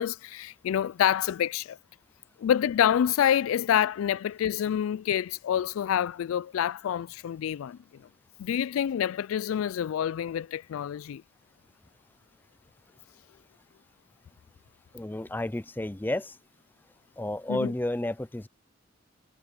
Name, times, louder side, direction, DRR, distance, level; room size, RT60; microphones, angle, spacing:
voice 1, 0.0-1.8 2.4-7.8 8.4-11.2 17.5-17.7, left 9 dB, 85° left, 0.3 m, -27 dB
voice 2, 14.9-16.4 17.2-18.5, left 1 dB, 10° left, 0.4 m, -31 dB
head